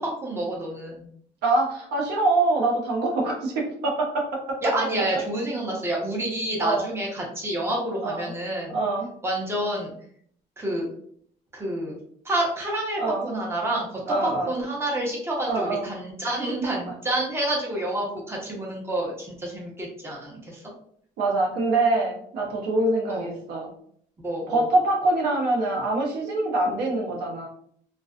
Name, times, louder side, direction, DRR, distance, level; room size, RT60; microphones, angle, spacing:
voice 1, 0.2-1.1 4.6-8.8 9.2-9.9 10.6-10.9 11.5-11.9 12.2-13.9 14.5-20.6 23.1-23.3 24.2-24.6, right 1 dB, 15° right, -2 dB, 0.8 m, -28 dB
voice 2, 1.4-4.3 6.6-6.9 8.0-8.3 8.7-9.1 13.0-13.3 14.1-14.5 15.5-15.9 21.2-23.7 24.5-27.5, right 2 dB, 85° right, 0 dB, 0.7 m, -24 dB
2.4 x 2.2 x 2.4 m, 0.63 s
cardioid pair, 110°, 17 cm